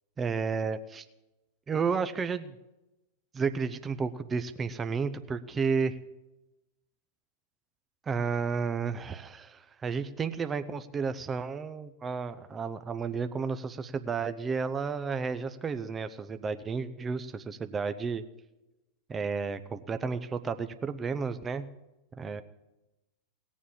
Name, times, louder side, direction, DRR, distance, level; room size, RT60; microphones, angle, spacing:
voice 1, 0.2-1.0 1.7-2.5 3.3-6.0 8.1-18.2 19.1-21.6 22.2-22.4, right 5 dB, 20° right, 10 dB, 0.8 m, -32 dB
18.5 x 7.3 x 8.5 m, 0.98 s
figure-of-eight pair, 90°, 0 cm